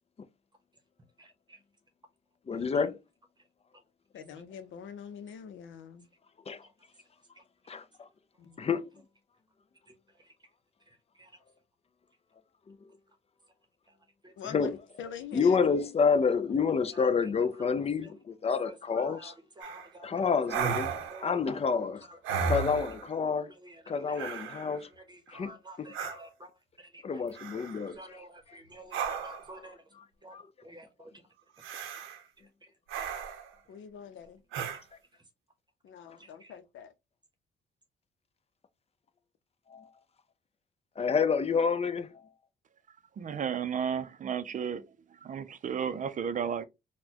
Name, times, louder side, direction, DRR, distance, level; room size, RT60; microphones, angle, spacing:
voice 1, 1.2-1.6 6.6-6.7 7.3-7.7 9.9-10.3 10.9-11.3 13.9-14.0 14.2-14.3 16.9-17.5 18.0-18.1 18.6-20.4 21.1-22.6 23.3-24.4 25.0-26.5 26.8-27.0 27.7-29.9 30.2-31.2 32.4-32.7 34.6-34.7 35.1-35.2 36.2-36.5, right 1 dB, 20° right, 0.9 m, -51 dB
voice 2, 2.5-3.0 6.5-6.7 7.7-8.1 8.6-8.9 12.7-12.8 14.5-14.8 15.3-19.3 20.0-20.9 21.2-22.1 22.5-23.5 23.9-24.9 25.3-25.9 27.0-28.6 29.1-29.2 30.0-30.1 30.3-30.5 39.7-39.9 41.0-42.3, left 5 dB, 30° left, 0.4 m, -29 dB
voice 3, 4.1-6.1 8.4-8.6 14.4-14.7 15.0-15.6 33.7-34.4 35.8-36.9 43.3-43.4, left 7 dB, 75° left, 0.6 m, -45 dB
sound 1, 19.6-19.9 20.5-21.3 22.2-23.1 24.2-24.8 25.9-26.2 27.3-27.9 28.9-29.5 31.6-32.2 32.9-33.5 34.5-34.8, right 6 dB, 90° right, 0.7 m, -34 dB
voice 4, 43.2-44.9 45.2-46.6, right 7 dB, 40° right, 0.5 m, -33 dB
4.0 x 2.2 x 2.8 m
cardioid pair, 90°, 20 cm